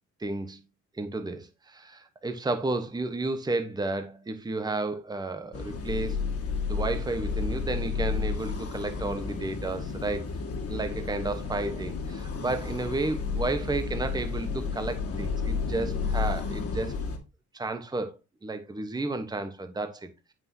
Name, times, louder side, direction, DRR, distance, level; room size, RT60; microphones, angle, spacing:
voice 1, 0.2-0.6 0.9-6.2 6.7-10.3 10.7-16.9 17.5-20.1, right 2 dB, 15° right, 1.0 m, -32 dB
sound 1, 5.5-17.2, left 5 dB, 50° left, 1.9 m, -32 dB
9.1 x 5.8 x 2.7 m
cardioid pair, 90°, 30 cm